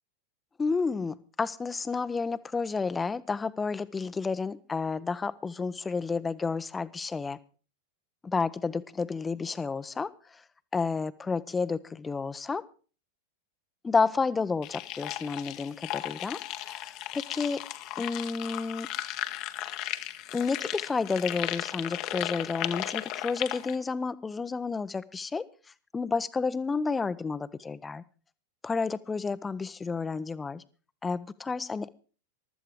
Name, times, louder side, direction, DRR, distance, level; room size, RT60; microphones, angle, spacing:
voice 1, 0.6-7.4 8.2-10.4 10.7-12.6 13.8-16.4 16.7-17.6 18.0-18.9 20.3-28.0 28.6-30.6 31.0-31.9, left 4 dB, 15° left, 16 dB, 0.7 m, -31 dB
sound 1, 14.6-23.7, left 15 dB, 40° left, 1.0 m, -35 dB
15.5 x 12.5 x 4.6 m, 0.37 s
figure-of-eight pair, 90°, 0 cm